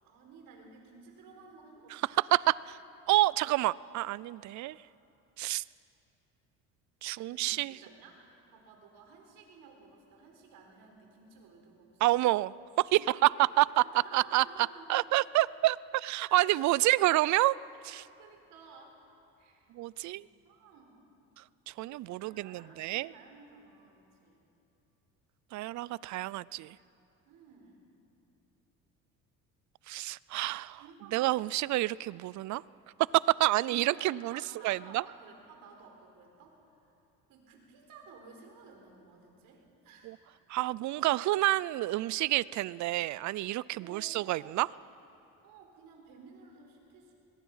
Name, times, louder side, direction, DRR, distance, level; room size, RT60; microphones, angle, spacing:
voice 1, 0.0-2.2 4.3-4.6 7.1-12.2 12.9-13.3 13.8-15.0 16.3-16.7 18.2-19.0 19.4-19.7 20.0-21.0 22.0-24.5 27.3-27.8 30.8-31.6 33.4-36.6 37.3-40.2 41.1-41.2 43.7-44.8 45.4-47.1, right 4 dB, 75° right, 2 dB, 4.4 m, -54 dB
voice 2, 1.9-2.8 3.1-4.7 5.4-5.6 7.0-7.7 12.0-13.3 13.6-13.8 14.1-14.4 14.9-17.5 17.9-18.0 19.7-20.3 21.7-23.1 25.5-26.8 29.9-30.8 31.1-32.6 33.1-35.0 40.0-40.2 40.5-44.7, right 17 dB, 60° right, 21 dB, 0.5 m, -28 dB
22.0 x 21.5 x 5.6 m, 3.0 s
cardioid pair, 100°, 34 cm